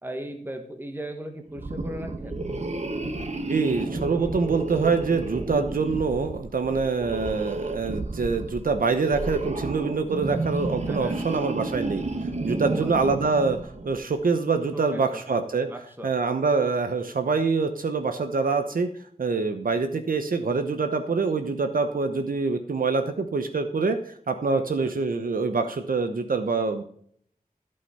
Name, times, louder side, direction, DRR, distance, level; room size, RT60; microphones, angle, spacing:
voice 1, 0.0-2.3 10.9-11.2 12.5-12.9 14.7-15.2 15.7-16.1 24.5-24.9, right 1 dB, 15° right, 4 dB, 1.3 m, -38 dB
sound 1, 1.5-14.0, right 2 dB, 50° right, 1.3 m, -32 dB
voice 2, 3.5-12.0 12.4-15.7 16.0-18.9 19.2-26.8, right 4 dB, 75° right, 7 dB, 1.0 m, -25 dB
15.5 x 5.5 x 5.6 m, 0.62 s
wide cardioid pair, 80°, 15 cm